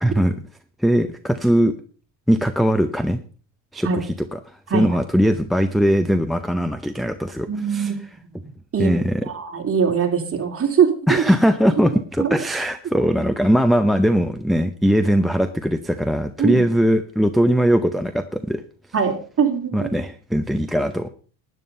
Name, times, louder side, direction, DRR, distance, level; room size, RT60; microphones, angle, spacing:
voice 1, 0.0-0.4 0.8-1.7 2.3-3.2 3.7-4.4 4.7-7.9 8.8-9.2 11.1-18.6 19.7-21.1, equal, ahead, 11 dB, 0.7 m, -20 dB
voice 2, 7.5-8.0 8.7-8.9 9.2-11.2 12.2-12.4 16.4-16.6 18.9-19.9, right 6 dB, 30° right, 3 dB, 3.1 m, -21 dB
12.5 x 9.6 x 5.4 m, 0.40 s
cardioid pair, 110°, 45 cm